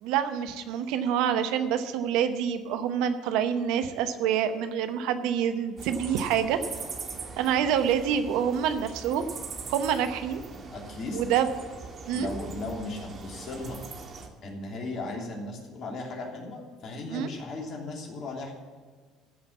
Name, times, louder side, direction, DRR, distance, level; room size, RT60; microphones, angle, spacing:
voice 1, 0.0-6.6 7.4-9.3 9.7-10.4 11.1-11.5 12.1-12.3 17.1-17.3, right 8 dB, 70° right, 10 dB, 0.9 m, -27 dB
sound 1, 5.8-14.3, right 4 dB, 45° right, 1.7 m, -41 dB
voice 2, 10.7-11.2 12.1-13.8 14.4-18.5, left 2 dB, 55° left, 0 dB, 3.0 m, -36 dB
14.0 x 5.3 x 8.4 m, 1.5 s
hypercardioid pair, 65°, 0 cm